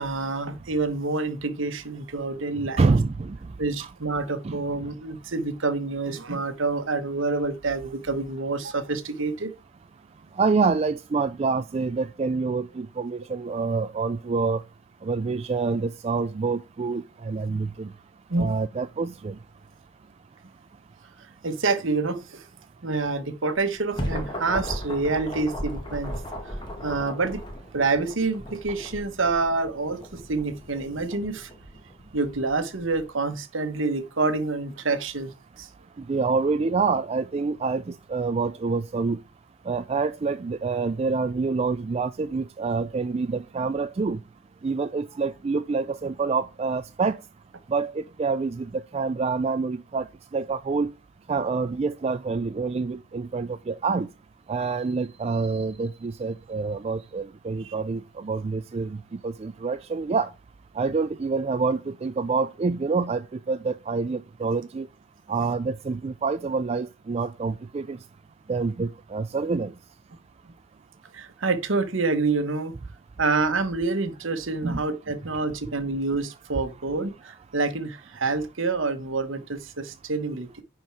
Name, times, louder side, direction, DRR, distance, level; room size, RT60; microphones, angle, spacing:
voice 1, 0.0-2.9 3.6-9.5 18.3-18.5 21.4-22.5 22.8-26.1 26.5-26.6 26.8-27.4 27.7-31.5 32.1-35.7 57.6-57.7 71.1-72.8 73.2-80.6, right 3 dB, 65° right, 1.1 m, -27 dB
voice 2, 2.8-3.4 3.8-3.9 4.4-4.6 10.4-14.6 15.0-17.9 18.4-19.4 36.1-39.2 39.7-44.2 44.6-47.2 47.7-50.1 50.3-50.9 51.3-54.1 54.5-59.0 59.2-60.3 60.8-64.9 65.3-68.0 68.5-69.7 74.6-74.8, right 4 dB, 30° right, 0.3 m, -27 dB
sound 1, 23.5-33.0, equal, 25° left, 1.7 m, -36 dB
10.5 x 4.6 x 4.5 m
head